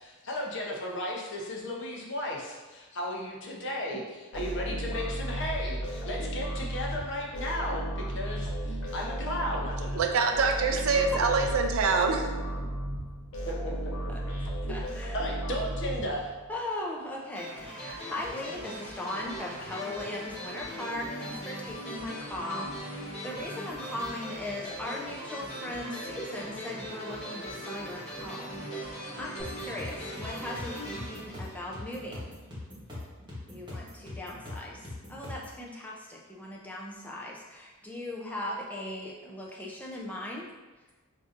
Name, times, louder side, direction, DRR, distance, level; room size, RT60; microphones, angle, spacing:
voice 1, 0.0-10.3 11.1-11.3 13.5-13.9 15.1-16.3, left 1 dB, 55° left, -2 dB, 0.6 m, -35 dB
sound 1, 4.3-16.6, right 1 dB, 80° left, 0.9 m, -34 dB
voice 2, 9.9-12.4, right 4 dB, 70° right, 4 dB, 0.4 m, -25 dB
voice 3, 14.7-15.2 16.5-32.4 33.4-40.5, left 1 dB, 5° left, -3 dB, 0.4 m, -38 dB
sound 2, 17.3-32.2, equal, 30° left, 1.0 m, -40 dB
sound 3, 29.4-35.6, left 2 dB, 20° right, 1.0 m, -42 dB
4.6 x 2.6 x 2.5 m, 1.2 s
head